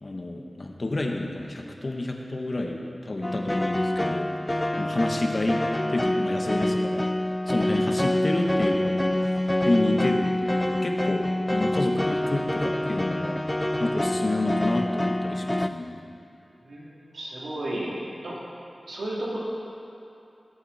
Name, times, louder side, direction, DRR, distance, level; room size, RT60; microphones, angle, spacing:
voice 1, 0.0-4.3 4.8-7.1 7.5-9.0 9.7-13.4 13.8-16.0, left 2 dB, 55° left, 2 dB, 1.5 m, -29 dB
sound 1, 3.2-15.7, left 1 dB, 20° left, 0.4 m, -26 dB
voice 2, 16.6-18.0 18.2-18.4 18.8-19.4, right 1 dB, 85° right, -7 dB, 3.4 m, -33 dB
20.0 x 8.3 x 4.4 m, 2.8 s
cardioid pair, 40°, 0 cm